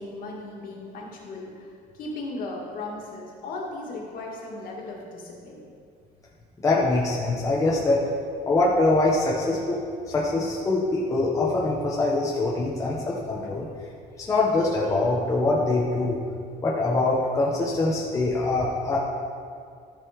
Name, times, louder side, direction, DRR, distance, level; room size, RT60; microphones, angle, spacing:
voice 1, 0.0-5.6, left 2 dB, 55° left, -2 dB, 2.1 m, -37 dB
voice 2, 6.6-8.0 8.5-9.8 10.1-13.7 14.2-16.2 16.6-19.0, left 2 dB, 20° left, -4 dB, 0.9 m, -23 dB
13.5 x 5.2 x 5.0 m, 2.3 s
cardioid pair, 170°, 18 cm